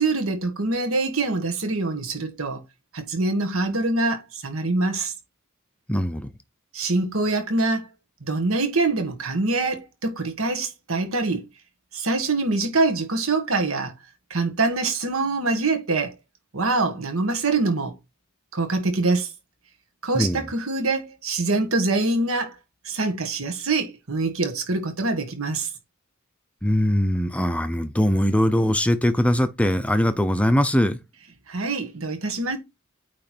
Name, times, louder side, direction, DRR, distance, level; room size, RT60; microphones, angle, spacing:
voice 1, 0.0-2.6 2.9-5.1 6.7-7.9 8.2-11.5 11.9-13.9 14.3-16.1 16.5-18.0 18.5-19.3 20.0-22.5 22.8-25.7 31.5-32.6, right 3 dB, 70° right, 1.5 m, -24 dB
voice 2, 5.9-6.3 20.1-20.4 26.6-31.0, equal, 5° left, 0.6 m, -21 dB
8.9 x 3.2 x 4.4 m
head